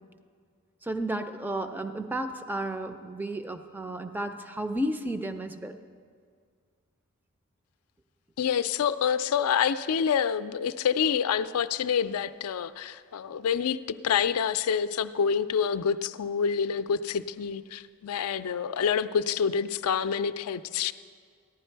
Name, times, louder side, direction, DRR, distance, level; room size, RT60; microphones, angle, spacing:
voice 1, 0.9-5.8, right 1 dB, 10° right, 8 dB, 0.4 m, -32 dB
voice 2, 8.4-13.8 14.0-20.9, left 7 dB, 80° left, 13 dB, 0.4 m, -27 dB
14.5 x 11.0 x 4.5 m, 2.1 s
head